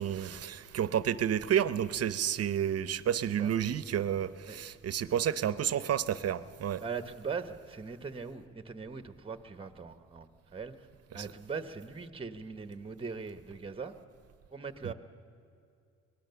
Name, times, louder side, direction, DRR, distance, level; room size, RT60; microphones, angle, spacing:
voice 1, 0.0-6.8 11.1-11.3 14.8-14.9, right 9 dB, 55° right, 0.8 m, -30 dB
voice 2, 6.8-10.9 11.1-13.9 14.5-14.9, right 5 dB, 20° right, 1.1 m, -40 dB
24.5 x 19.0 x 6.9 m
cardioid pair, 90°, 30 cm